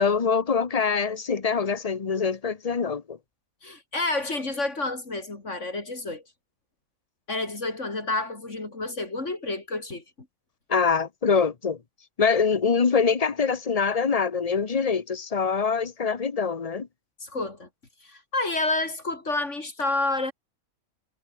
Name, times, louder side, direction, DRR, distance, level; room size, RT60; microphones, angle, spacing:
voice 1, 0.0-3.2 10.7-11.8 12.2-16.9, left 5 dB, 30° left, 1.0 m, -24 dB
voice 2, 3.6-6.2 7.3-10.0 17.2-17.7 18.0-20.3, left 2 dB, 55° left, 3.7 m, -29 dB
omnidirectional pair, 1.5 m